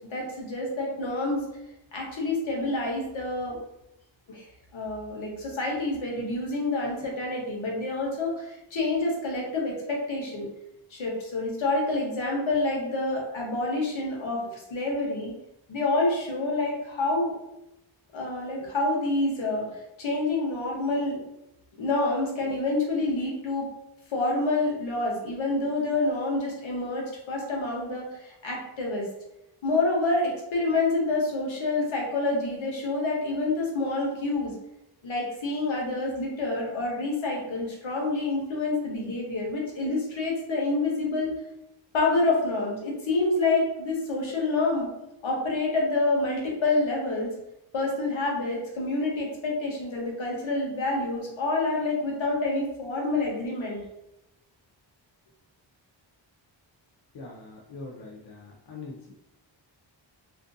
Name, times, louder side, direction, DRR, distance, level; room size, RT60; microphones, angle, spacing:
voice 1, 0.1-1.4 1.9-3.6 4.3-4.4 4.7-10.5 10.9-15.3 15.7-17.3 18.1-21.2 21.8-23.7 24.1-29.1 29.6-34.5 35.0-41.3 41.9-44.9 45.2-47.3 47.7-53.8, left 2 dB, 80° left, -2 dB, 0.9 m, -27 dB
voice 2, 57.1-59.1, left 3 dB, 60° left, -1 dB, 0.5 m, -42 dB
2.5 x 2.2 x 2.5 m, 0.88 s
wide cardioid pair, 95°, 47 cm